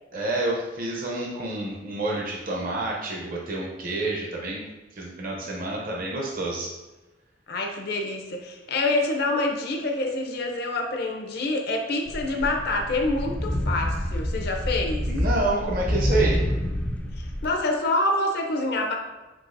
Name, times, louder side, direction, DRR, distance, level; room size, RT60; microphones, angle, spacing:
voice 1, 0.1-4.6 5.0-6.7 15.1-16.5, right 2 dB, 50° right, -2 dB, 0.6 m, -28 dB
voice 2, 7.5-15.1 17.2-18.9, left 2 dB, 60° left, 3 dB, 0.5 m, -26 dB
sound 1, 12.1-17.5, left 1 dB, 5° left, 0.3 m, -27 dB
6.0 x 2.8 x 2.5 m, 1.1 s
head